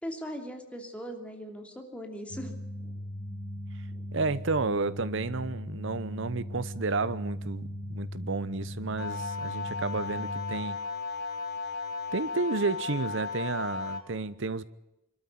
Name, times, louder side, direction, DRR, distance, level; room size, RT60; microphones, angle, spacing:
voice 1, 0.0-2.6, equal, 5° left, 2.7 m, -39 dB
sound 1, 2.3-10.6, equal, 35° left, 6.9 m, -39 dB
voice 2, 4.1-10.8 12.1-14.6, right 3 dB, 65° right, 1.0 m, -31 dB
sound 2, 9.0-14.0, left 4 dB, 55° left, 3.2 m, -35 dB
24.5 x 13.0 x 9.9 m
head